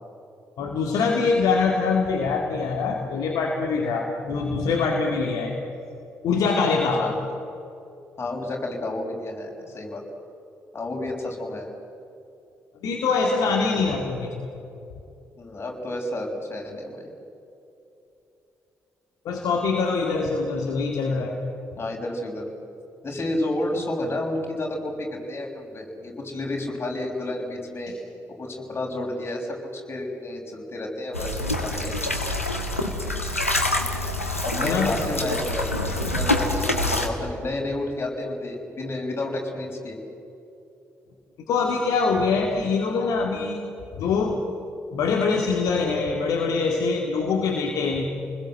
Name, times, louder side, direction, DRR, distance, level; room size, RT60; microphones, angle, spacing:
voice 1, 0.6-5.6 6.2-7.2 12.8-14.5 19.2-21.3 27.9-28.0 34.6-35.0 41.5-43.6 44.0-44.5 44.9-48.0, left 4 dB, 60° left, 1 dB, 2.3 m, -24 dB
voice 2, 8.2-10.0 10.7-11.7 15.4-17.1 21.7-22.5 23.0-27.9 28.3-32.0 34.4-40.0, left 1 dB, 35° left, 0 dB, 6.2 m, -31 dB
sound 1, 31.1-37.1, left 1 dB, 90° left, 1.5 m, -26 dB
29.5 x 20.5 x 7.9 m, 2.8 s
figure-of-eight pair, 40°, 7 cm